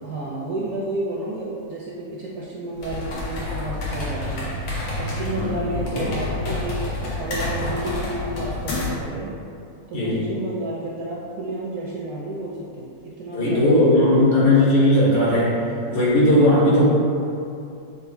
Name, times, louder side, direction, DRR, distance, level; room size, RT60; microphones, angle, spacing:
voice 1, 0.0-4.6 5.0-9.4 9.9-14.6 16.7-16.9, right 2 dB, 70° right, -6 dB, 0.9 m, -31 dB
sound 1, 2.7-9.1, left 2 dB, 85° left, 1.6 m, -29 dB
voice 2, 5.3-6.1 9.9-10.2 13.3-15.6 15.9-16.9, left 1 dB, 65° left, -10 dB, 1.9 m, -18 dB
6.4 x 2.5 x 2.5 m, 2.6 s
omnidirectional pair, 2.0 m